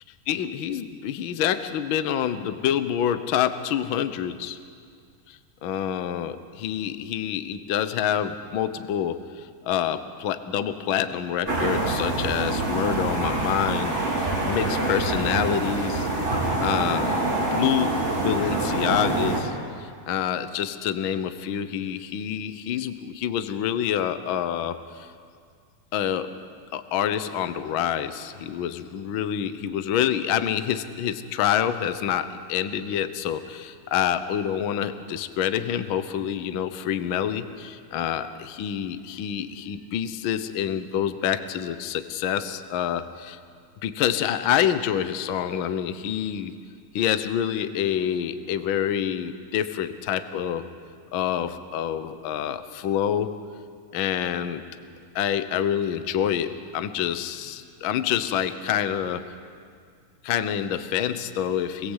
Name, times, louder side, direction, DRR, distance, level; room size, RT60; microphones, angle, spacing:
voice 1, 0.3-4.6 5.3-16.1 16.6-17.1 17.5-17.9 18.2-25.1 25.9-26.3 26.7-43.4 43.8-46.5 46.9-50.7 51.1-53.3 53.9-54.6 55.1-59.2 60.2-61.9, left 9 dB, 70° left, 11 dB, 1.1 m, -27 dB
sound 1, 11.5-19.4, right 2 dB, 20° right, 4.4 m, -25 dB
26.5 x 21.5 x 8.1 m, 2.2 s
omnidirectional pair, 3.7 m